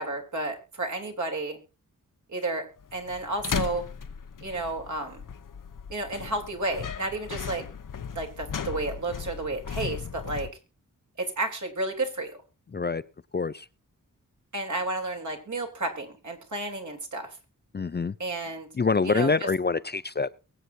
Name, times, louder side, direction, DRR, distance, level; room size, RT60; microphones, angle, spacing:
voice 1, 0.0-1.6 2.3-2.6 2.9-3.8 4.4-5.2 5.9-7.7 8.2-10.5 11.2-12.4 14.5-17.4 18.2-18.7 19.0-19.5, right 2 dB, 60° right, 2 dB, 3.6 m, -31 dB
sound 1, 2.8-10.5, left 7 dB, 65° left, 1.0 m, -36 dB
voice 2, 12.7-13.0 13.3-13.7 17.7-18.1 18.8-20.3, left 4 dB, 30° left, 14 dB, 0.5 m, -25 dB
23.0 x 8.0 x 2.8 m, 0.31 s
wide cardioid pair, 90°, 34 cm